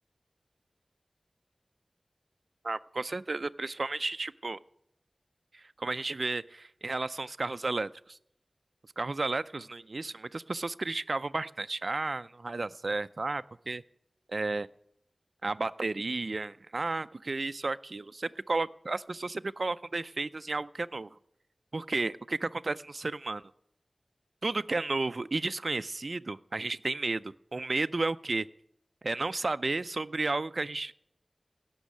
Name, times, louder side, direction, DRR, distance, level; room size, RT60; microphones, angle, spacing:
voice 1, 2.6-4.6 5.5-8.2 9.0-13.8 14.3-14.7 15.4-21.1 21.7-23.4 24.4-28.5 29.0-30.9, right 3 dB, 60° right, 14 dB, 0.5 m, -33 dB
16.5 x 6.3 x 9.5 m, 0.73 s
wide cardioid pair, 55°, 0 cm